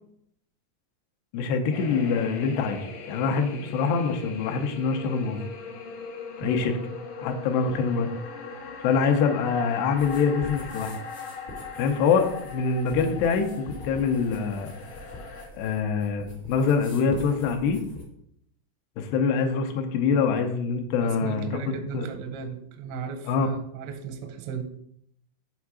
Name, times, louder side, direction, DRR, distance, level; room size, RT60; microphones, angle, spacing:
voice 1, 1.3-2.8 3.1-5.4 6.4-6.8 7.2-8.1 8.8-11.0 11.7-14.7 15.5-17.8 19.0-21.6 21.9-22.1 23.2-23.5, left 5 dB, 85° left, 5 dB, 2.5 m, -25 dB
sound 1, 1.7-15.5, left 5 dB, 70° left, 2.1 m, -40 dB
sound 2, 10.0-18.0, left 1 dB, 50° left, 1.0 m, -44 dB
voice 2, 21.0-24.6, right 6 dB, 85° right, 6 dB, 2.7 m, -35 dB
7.4 x 3.5 x 6.1 m, 0.71 s
omnidirectional pair, 5.5 m